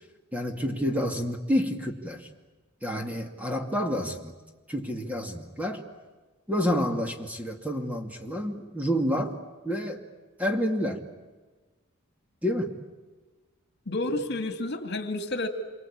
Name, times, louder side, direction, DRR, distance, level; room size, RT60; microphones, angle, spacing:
voice 1, 0.3-2.3 2.8-4.3 4.7-5.8 6.5-9.3 9.6-10.0 10.4-11.1 12.4-12.8, equal, 5° right, 3 dB, 2.3 m, -29 dB
voice 2, 13.9-15.5, left 2 dB, 55° left, 7 dB, 2.4 m, -30 dB
27.5 x 24.5 x 8.8 m, 1.3 s
head